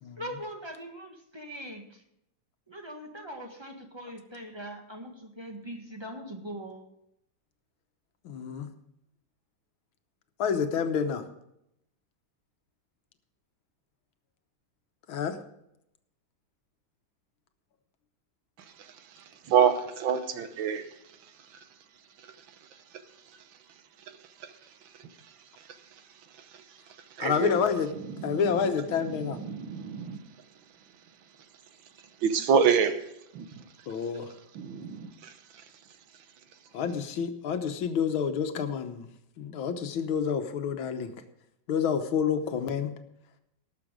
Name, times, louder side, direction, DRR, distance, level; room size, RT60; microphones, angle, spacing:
voice 1, 0.2-2.0 2.7-6.8, equal, 15° right, 1.4 m, -41 dB
voice 2, 8.2-8.7 10.4-11.3 15.1-15.4 27.2-27.9 28.2-29.4 33.9-34.3 36.7-39.1 39.4-41.1 41.7-42.9, left 7 dB, 90° left, 1.8 m, -28 dB
voice 3, 18.8-20.9 22.2-22.3 24.1-24.5 26.5-26.6 27.2-27.6 28.2-28.4 29.1-30.2 32.2-33.0 33.3-33.6 34.5-35.3, right 7 dB, 75° right, 1.7 m, -27 dB
18.5 x 6.9 x 5.0 m
omnidirectional pair, 2.2 m